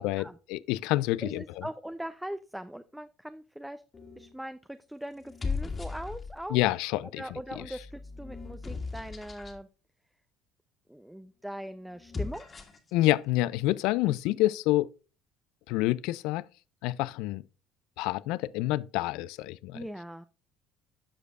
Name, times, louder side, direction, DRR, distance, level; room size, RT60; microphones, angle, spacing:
voice 1, 0.0-1.6 6.5-7.6 12.9-14.9 15.7-16.4 16.8-17.4 18.0-19.8, left 17 dB, 70° left, 0.3 m, -28 dB
voice 2, 1.2-3.8 4.2-6.6 7.2-9.7 10.9-12.5 14.1-14.4 19.7-20.2, right 1 dB, 5° right, 0.5 m, -41 dB
sound 1, 3.9-4.4 5.2-6.5 7.3-9.6 11.9-12.9, left 4 dB, 30° left, 1.8 m, -38 dB
13.0 x 5.1 x 2.4 m
hypercardioid pair, 70°, 0 cm